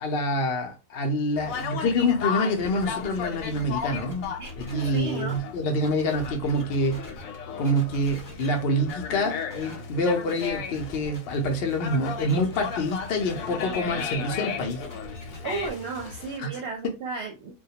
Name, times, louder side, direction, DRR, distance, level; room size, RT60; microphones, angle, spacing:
voice 1, 0.0-4.3 4.6-7.0 7.6-14.8 16.4-16.5, left 1 dB, 60° left, 0.7 m, -26 dB
Conversation, 1.4-16.4, left 6 dB, 90° left, 1.0 m, -35 dB
sound 1, 1.5-1.7 2.3-5.4 5.8-7.4 7.6-8.5 8.9-9.0 9.5-9.8 10.3-11.2 12.2-15.7, left 1 dB, 20° left, 0.5 m, -46 dB
voice 2, 4.4-5.4 15.4-17.5, right 4 dB, 60° right, 0.7 m, -34 dB
2.2 x 2.2 x 2.7 m
omnidirectional pair, 1.4 m